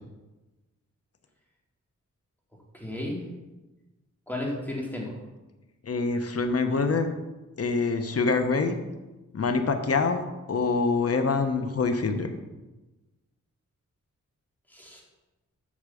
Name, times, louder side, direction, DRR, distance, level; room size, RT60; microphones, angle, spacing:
voice 1, 2.7-3.2 4.3-5.2 14.7-15.0, left 1 dB, 5° left, -3 dB, 2.7 m, -33 dB
voice 2, 5.8-7.1 7.6-8.8 9.3-10.2 10.5-12.3, left 4 dB, 50° left, 7 dB, 1.0 m, -25 dB
8.5 x 4.8 x 7.0 m, 1.1 s
cardioid pair, 75°, 31 cm